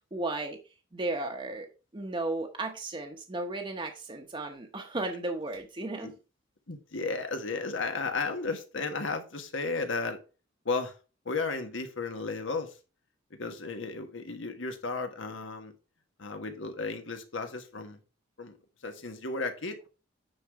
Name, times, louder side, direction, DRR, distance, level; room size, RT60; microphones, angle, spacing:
voice 1, 0.1-0.6 0.9-1.7 1.9-6.1, right 2 dB, 25° right, 3 dB, 0.8 m, -34 dB
voice 2, 6.7-10.2 10.6-11.0 11.2-12.8 13.4-15.7 16.2-18.0 18.4-18.6 18.8-19.9, left 3 dB, 85° left, 6 dB, 1.4 m, -34 dB
9.5 x 4.0 x 4.6 m, 0.33 s
head